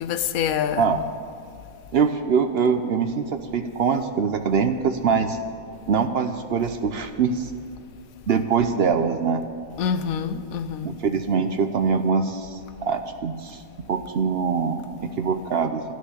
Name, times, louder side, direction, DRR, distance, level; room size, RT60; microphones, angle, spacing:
voice 1, 0.0-1.0 9.8-10.9, left 7 dB, 80° left, 1.1 m, -26 dB
voice 2, 1.9-5.4 5.9-7.5 8.3-9.4 10.8-13.6 13.9-14.8 15.2-15.8, right 6 dB, 55° right, 0.8 m, -23 dB
13.0 x 6.3 x 9.7 m
omnidirectional pair, 1.5 m